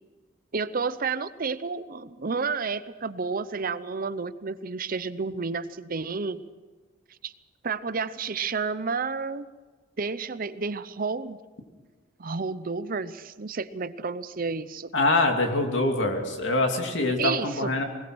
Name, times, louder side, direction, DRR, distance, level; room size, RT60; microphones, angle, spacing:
voice 1, 0.5-6.4 7.2-7.3 7.6-9.5 10.0-11.4 12.2-14.9 17.2-17.7, right 4 dB, 45° right, 14 dB, 0.7 m, -31 dB
voice 2, 14.9-17.8, left 2 dB, 70° left, 3 dB, 2.8 m, -24 dB
20.5 x 20.0 x 6.3 m, 1.4 s
head